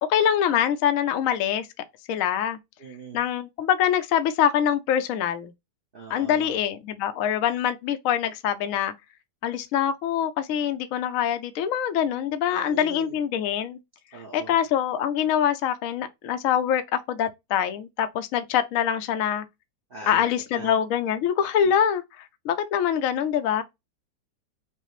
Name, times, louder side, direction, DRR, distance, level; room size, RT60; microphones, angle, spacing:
voice 1, 0.1-2.6 3.1-5.5 6.1-8.9 9.4-13.8 14.3-19.4 20.1-23.6, left 9 dB, 70° left, 0.8 m, -24 dB
voice 2, 2.8-3.2 5.9-6.6 12.5-13.2 14.1-14.6 19.9-20.2 20.5-20.7 21.4-21.7, right 3 dB, 45° right, 0.7 m, -41 dB
5.6 x 2.0 x 3.0 m
omnidirectional pair, 1.8 m